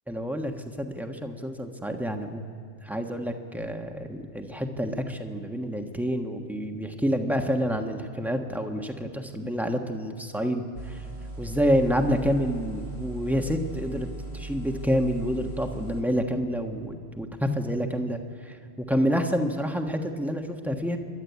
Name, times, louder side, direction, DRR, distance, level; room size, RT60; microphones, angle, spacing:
voice 1, 0.1-2.4 2.8-11.0 11.4-14.1 14.3-21.0, equal, ahead, 4 dB, 1.3 m, -28 dB
sound 1, 10.8-16.0, right 2 dB, 70° right, 3.7 m, -38 dB
30.0 x 12.5 x 8.3 m, 2.5 s
omnidirectional pair, 1.3 m